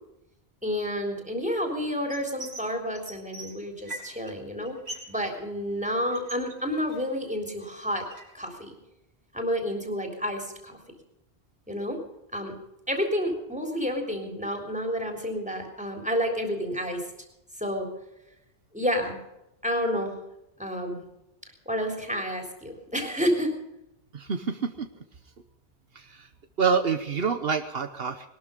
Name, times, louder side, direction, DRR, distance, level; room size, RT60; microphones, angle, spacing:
voice 1, 0.6-4.8 5.1-8.1 8.3-8.7 9.3-10.8 11.7-12.0 12.3-12.6 12.9-17.0 17.6-17.9 18.7-19.2 19.6-20.2 20.6-21.0 21.7-23.5, equal, 5° right, 3 dB, 3.6 m, -30 dB
sound 1, 2.1-2.7 2.9-4.3 4.6-5.2 5.4-7.2 7.6-8.4, right 2 dB, 90° right, 4.6 m, -42 dB
voice 2, 24.1-24.9 25.9-26.3 26.6-28.3, right 6 dB, 70° right, 8 dB, 1.2 m, -27 dB
21.0 x 12.5 x 5.3 m, 0.87 s
omnidirectional pair, 1.1 m